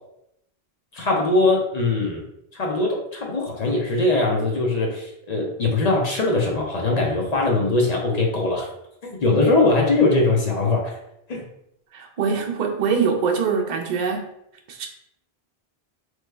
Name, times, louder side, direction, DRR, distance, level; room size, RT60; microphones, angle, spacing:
voice 1, 0.9-2.2 2.5-8.7 9.0-11.0 11.3-11.4, left 2 dB, 50° left, -1 dB, 0.6 m, -21 dB
voice 2, 11.9-14.3 14.7-14.9, right 5 dB, 55° right, 2 dB, 0.6 m, -23 dB
3.1 x 2.1 x 3.2 m, 0.79 s
omnidirectional pair, 1.0 m